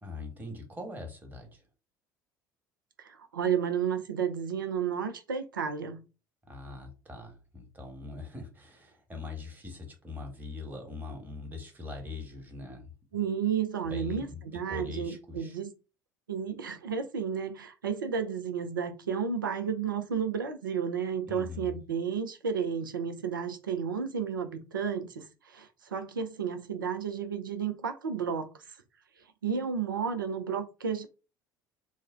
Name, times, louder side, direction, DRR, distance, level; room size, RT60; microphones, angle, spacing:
voice 1, 0.0-1.6 6.5-13.2 13.8-14.4 14.7-15.6 21.3-21.8, left 3 dB, 15° right, 1.2 m, -42 dB
voice 2, 3.0-6.0 13.1-15.7 16.3-28.8 29.4-31.1, right 7 dB, 80° right, 0.5 m, -32 dB
3.2 x 2.1 x 3.5 m
figure-of-eight pair, 60°, 11 cm